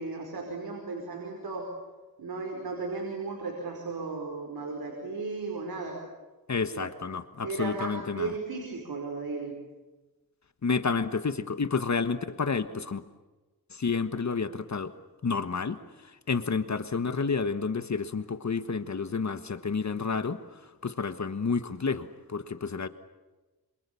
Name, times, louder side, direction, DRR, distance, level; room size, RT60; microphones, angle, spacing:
voice 1, 0.0-1.7 2.2-6.0 6.7-6.9 7.4-9.6, right 3 dB, 85° right, 1 dB, 5.2 m, -35 dB
voice 2, 6.5-8.3 10.6-13.0 13.7-14.9 15.2-15.8 16.3-22.9, left 5 dB, 50° left, 11 dB, 1.5 m, -30 dB
27.5 x 27.5 x 7.1 m, 1.2 s
wide cardioid pair, 80°, 36 cm